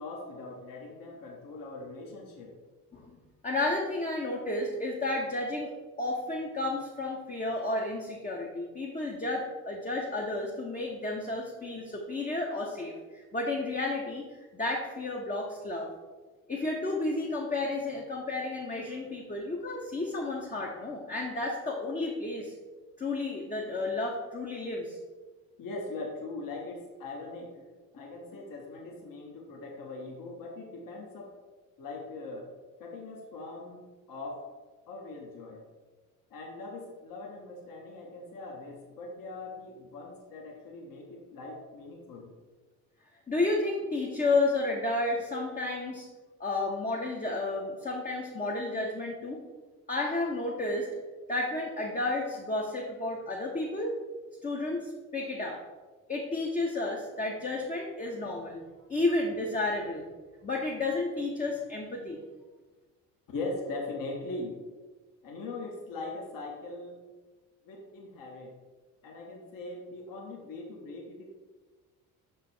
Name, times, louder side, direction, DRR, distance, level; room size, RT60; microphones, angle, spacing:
voice 1, 0.0-2.5 25.6-27.6 27.9-31.3 31.8-32.5 32.8-34.4 34.9-35.6 36.3-42.3 63.3-64.6 65.2-67.0 67.6-68.5 69.0-71.2, left 2 dB, 50° left, 0 dB, 1.2 m, -41 dB
voice 2, 3.4-5.7 6.0-14.3 14.5-15.9 16.5-22.5 23.0-25.0 43.3-46.1 46.4-49.4 49.9-50.9 51.3-54.0 54.4-55.6 56.1-58.6 58.9-60.0 60.4-62.2, left 2 dB, 20° left, -1 dB, 0.8 m, -32 dB
6.0 x 3.7 x 4.3 m, 1.3 s
hypercardioid pair, 55°, 44 cm